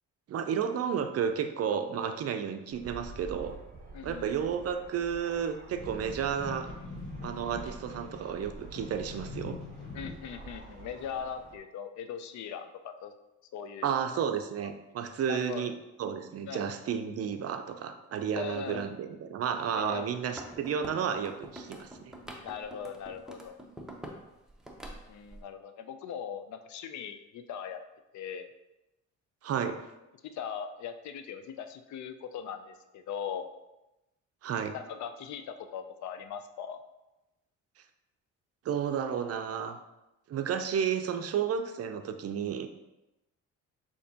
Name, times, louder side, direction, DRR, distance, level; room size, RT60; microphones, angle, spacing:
voice 1, 0.3-3.6 4.0-6.7 7.2-9.6 13.8-15.7 16.0-22.1 29.4-29.7 34.4-34.7 38.6-39.8 40.3-42.7, right 7 dB, 50° right, 8 dB, 0.5 m, -32 dB
Fixed-wing aircraft airplane, 2.7-11.6, right 3 dB, 30° right, 1.0 m, -48 dB
voice 2, 3.9-4.5 9.9-13.1 13.5-14.2 15.3-15.7 16.5-16.6 18.4-19.0 19.8-20.1 22.4-23.6 25.1-27.8 28.1-28.5 30.2-33.4 34.7-36.8, left 7 dB, 65° left, 9 dB, 0.5 m, -40 dB
sound 1, 5.7-10.6 11.2-11.3, left 3 dB, 50° left, 1.2 m, -44 dB
sound 2, 20.2-24.2 24.5-25.4, right 1 dB, ahead, 0.7 m, -45 dB
6.5 x 2.8 x 2.8 m, 0.97 s
cardioid pair, 80°, 31 cm